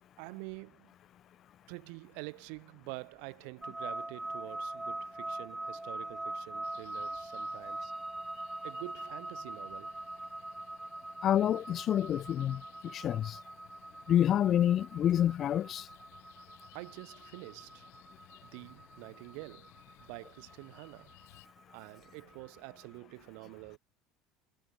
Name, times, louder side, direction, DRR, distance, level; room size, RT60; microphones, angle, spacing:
voice 1, 0.2-0.9 1.7-7.9 8.6-10.0 16.7-17.9 18.4-19.7 20.0-21.2 21.7-23.8, right 40 dB or more, 70° right, 4.3 m, -47 dB
sound 1, 3.6-22.7, right 2 dB, 5° right, 0.9 m, -43 dB
sound 2, 6.6-21.5, left 24 dB, 85° left, 7.2 m, -62 dB
voice 2, 11.2-13.4 14.1-15.9, left 10 dB, 40° left, 0.9 m, -28 dB
supercardioid pair, 130°, 0 cm